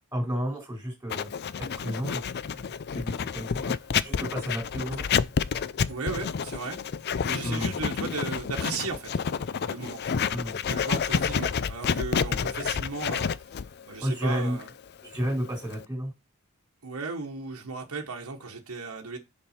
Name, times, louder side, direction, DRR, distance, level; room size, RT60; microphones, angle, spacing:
voice 1, 0.1-1.3 1.6-3.7 4.0-5.1 7.4-7.7 10.3-10.6 14.0-14.6 15.0-16.1, equal, 10° right, 4.1 m, -32 dB
Writing, 1.1-15.8, left 6 dB, 50° left, 0.4 m, -29 dB
voice 2, 5.9-6.8 7.2-9.2 9.7-10.0 10.6-14.7 16.8-19.2, right 4 dB, 80° right, 1.2 m, -36 dB
7.0 x 5.2 x 4.3 m
head